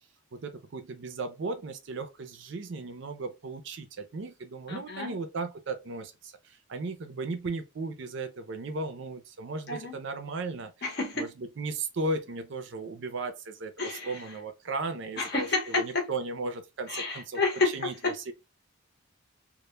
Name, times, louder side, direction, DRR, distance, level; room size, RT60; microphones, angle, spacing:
voice 1, 0.3-10.7 11.2-17.4 17.7-18.3, right 3 dB, 55° right, 0.4 m, -36 dB
voice 2, 4.7-5.2 9.7-9.9 10.8-11.3 13.8-14.2 15.2-16.1 16.9-18.2, left 3 dB, 50° left, 0.7 m, -30 dB
2.1 x 2.1 x 3.0 m
head